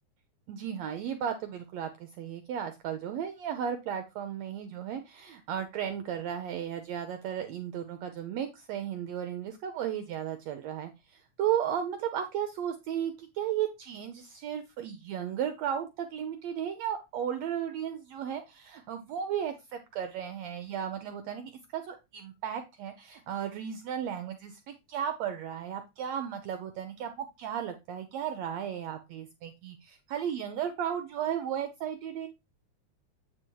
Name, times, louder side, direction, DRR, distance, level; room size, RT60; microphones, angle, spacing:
voice 1, 0.5-32.3, right 9 dB, 70° right, 7 dB, 1.8 m, -35 dB
9.2 x 4.1 x 4.6 m, 0.23 s
omnidirectional pair, 3.5 m